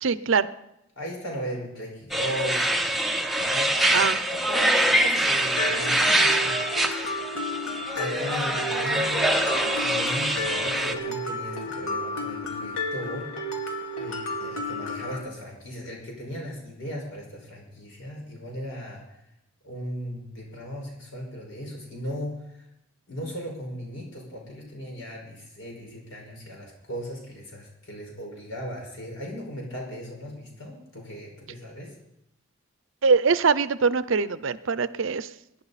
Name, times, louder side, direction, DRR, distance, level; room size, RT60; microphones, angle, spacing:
voice 1, 0.0-0.5 3.9-4.2 33.0-35.3, right 5 dB, 65° right, 15 dB, 0.6 m, -22 dB
voice 2, 1.0-2.9 3.4-6.6 7.9-9.3 9.8-13.4 14.0-19.1 19.6-22.6 23.1-31.9, equal, 70° left, 0 dB, 5.3 m, -37 dB
sound 1, 2.1-10.9, right 1 dB, ahead, 0.7 m, -24 dB
Mallet percussion, 5.6-15.2, left 2 dB, 90° left, 2.4 m, -32 dB
22.5 x 10.5 x 4.2 m, 0.82 s
head